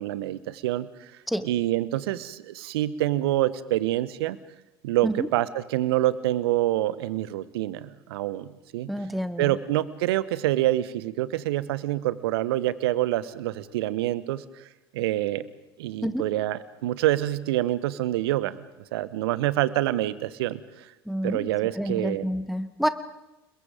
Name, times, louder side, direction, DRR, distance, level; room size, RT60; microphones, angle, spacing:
voice 1, 0.0-1.1 1.4-4.4 4.8-8.9 9.4-14.4 14.9-15.5 15.8-18.6 18.9-20.9 21.2-22.3, right 14 dB, 70° right, 17 dB, 1.1 m, -26 dB
voice 2, 8.9-9.6 16.0-16.3 21.0-22.9, equal, ahead, 12 dB, 1.7 m, -29 dB
29.5 x 21.5 x 5.1 m, 0.96 s
hypercardioid pair, 70°, 13 cm